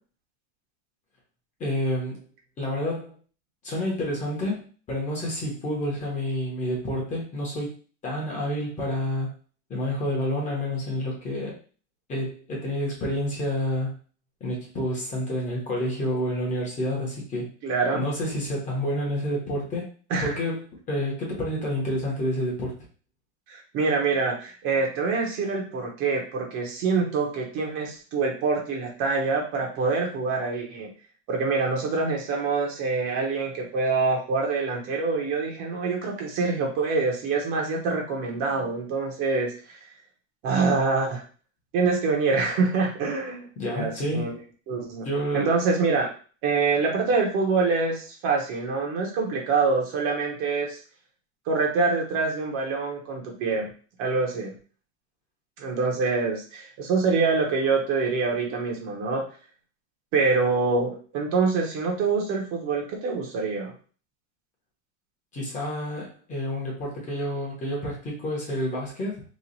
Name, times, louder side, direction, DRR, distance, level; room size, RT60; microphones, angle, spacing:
voice 1, 1.6-2.2 2.6-3.1 3.6-7.7 8.0-9.3 9.7-11.6 12.1-14.0 14.4-17.5 17.9-19.9 20.2-22.7 43.6-44.4 45.0-45.6 65.3-69.2, equal, 20° left, -2 dB, 1.0 m, -29 dB
voice 2, 17.6-18.0 20.1-20.3 23.5-30.9 31.3-39.8 40.4-41.2 41.7-43.5 43.7-44.3 44.7-45.1 45.3-46.1 46.4-50.8 51.5-53.7 54.0-54.5 55.6-59.2 60.1-63.7, right 4 dB, 35° right, 0 dB, 0.9 m, -25 dB
3.1 x 2.4 x 3.9 m, 0.39 s
supercardioid pair, 155°, 36 cm